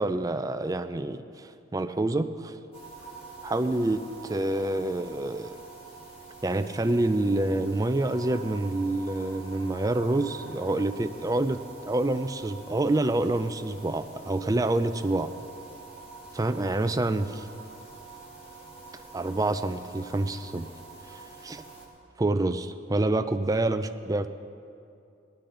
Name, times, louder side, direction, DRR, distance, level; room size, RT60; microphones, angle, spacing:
voice 1, 0.0-2.6 3.4-5.6 6.4-11.6 11.9-15.3 16.3-17.5 19.1-20.7 21.1-21.7 22.2-24.3, right 2 dB, 20° right, 10 dB, 0.4 m, -27 dB
sound 1, 2.7-21.9, right 4 dB, 30° left, 2.1 m, -46 dB
18.0 x 11.5 x 3.9 m, 2.5 s
head